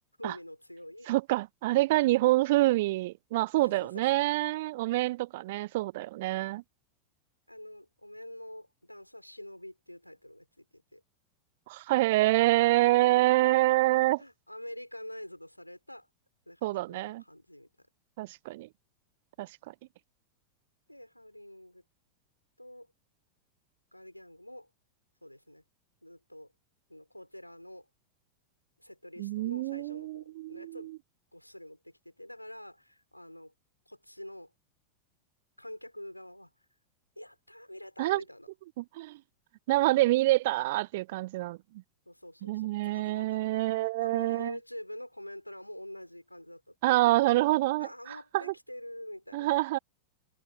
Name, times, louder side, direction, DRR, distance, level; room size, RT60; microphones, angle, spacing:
voice 1, 0.2-1.1 3.6-4.2 7.5-11.0 12.1-12.3 12.9-16.1 16.5-17.9 20.9-21.8 22.6-22.9 23.9-24.7 25.2-25.6 26.0-26.5 26.9-27.9 28.8-30.9 31.3-33.5 33.9-34.5 35.6-36.5 37.2-38.5 42.0-47.0 47.8-49.6, left 1 dB, 90° left, 6.6 m, -46 dB
voice 2, 1.1-6.6 11.7-14.2 16.6-17.2 18.2-18.7 19.4-19.5 29.2-30.9 38.0-38.2 38.8-39.2 39.7-41.6 42.4-44.5 46.8-48.5 49.3-49.8, right 18 dB, 50° right, 0.4 m, -26 dB
figure-of-eight pair, 90°, 0 cm